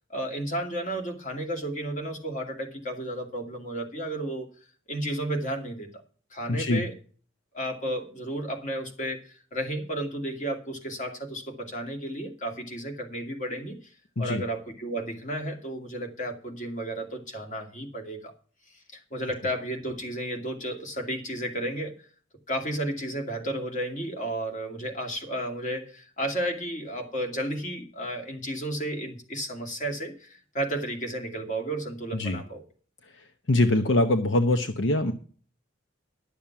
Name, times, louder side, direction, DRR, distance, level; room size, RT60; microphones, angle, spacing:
voice 1, 0.1-4.5 4.9-5.9 6.3-6.9 7.5-13.8 14.2-18.3 18.9-22.1 22.5-32.6, right 1 dB, 40° left, 3 dB, 2.5 m, -33 dB
voice 2, 6.5-6.8 14.2-14.4 32.1-32.4 33.1-35.1, left 2 dB, 70° left, 7 dB, 1.0 m, -24 dB
11.5 x 7.2 x 5.9 m, 0.42 s
head